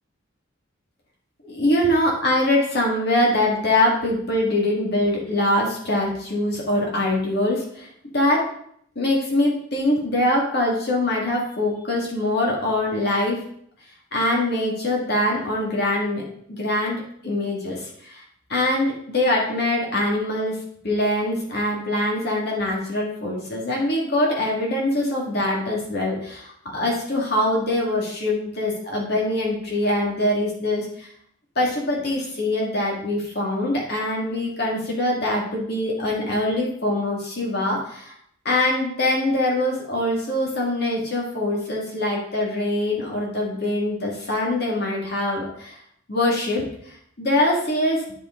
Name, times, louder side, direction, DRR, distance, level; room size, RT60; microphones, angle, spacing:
voice 1, 1.4-8.5 9.0-13.4 14.1-16.2 16.6-17.0 17.2-18.2 18.5-20.5 20.8-31.1 31.6-38.1 38.5-45.8 46.1-48.0, left 1 dB, 50° left, -2 dB, 2.0 m, -23 dB
10.0 x 6.8 x 3.7 m, 0.66 s
head